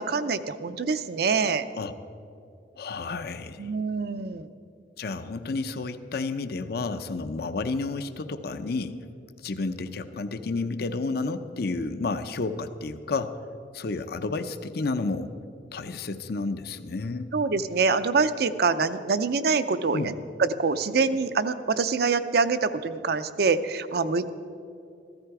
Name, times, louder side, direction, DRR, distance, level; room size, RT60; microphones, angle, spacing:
voice 1, 0.0-1.7 3.6-4.5 17.3-20.1 20.4-24.3, right 4 dB, 60° right, 11 dB, 0.6 m, -25 dB
voice 2, 2.7-3.7 5.0-9.0 9.4-13.4 13.7-15.3 15.7-17.3 19.9-20.1, left 3 dB, 60° left, 10 dB, 0.6 m, -31 dB
15.0 x 13.5 x 4.8 m, 2.6 s
head